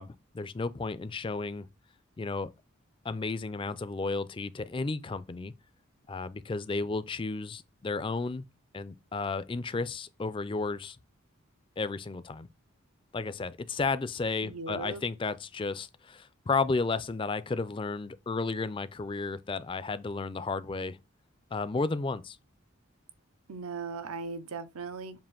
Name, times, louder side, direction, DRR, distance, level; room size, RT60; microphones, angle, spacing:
voice 1, 0.0-1.7 2.2-2.5 3.0-5.5 6.1-8.4 8.7-11.0 11.8-12.5 13.1-21.0 21.5-22.4, left 3 dB, 25° left, 0.3 m, -33 dB
voice 2, 14.4-15.0 23.5-25.2, right 4 dB, 90° right, 0.7 m, -38 dB
7.4 x 2.5 x 5.7 m
head